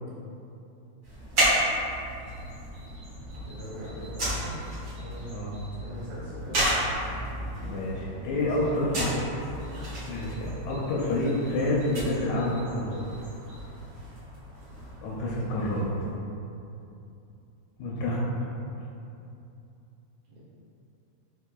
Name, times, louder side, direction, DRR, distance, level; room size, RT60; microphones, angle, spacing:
sound 1, 1.0-16.2, right 1 dB, 45° right, 1.5 m, -33 dB
voice 1, 3.4-5.4 5.7-6.8 8.6-9.2 20.3-20.4, equal, 80° right, -11 dB, 2.3 m, -41 dB
voice 2, 7.6-9.3 10.1-13.0 15.0-15.8 17.8-18.2, left 1 dB, 85° left, -4 dB, 2.0 m, -28 dB
5.6 x 3.2 x 2.2 m, 2.8 s
omnidirectional pair, 3.3 m